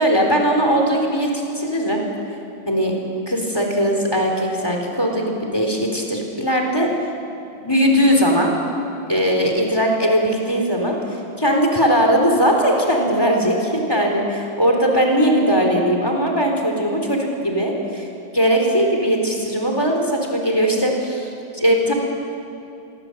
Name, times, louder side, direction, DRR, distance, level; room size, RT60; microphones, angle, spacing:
voice 1, 0.0-2.0 2.7-2.9 3.3-6.9 7.5-8.5 9.1-11.0 11.4-18.1 18.3-21.9, equal, 10° left, 1 dB, 4.1 m, -19 dB
26.5 x 23.0 x 8.2 m, 2.7 s
omnidirectional pair, 2.2 m